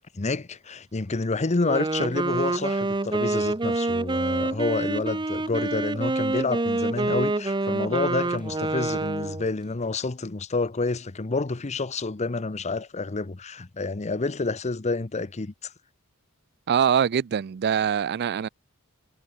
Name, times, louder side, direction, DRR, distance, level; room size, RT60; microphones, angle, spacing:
voice 1, 0.1-15.7, left 3 dB, 30° left, 0.7 m, -28 dB
Wind instrument woodwind instrument, 1.5-9.5, right 2 dB, 20° right, 0.8 m, -27 dB
voice 2, 16.7-18.5, right 8 dB, 50° right, 0.4 m, -23 dB
head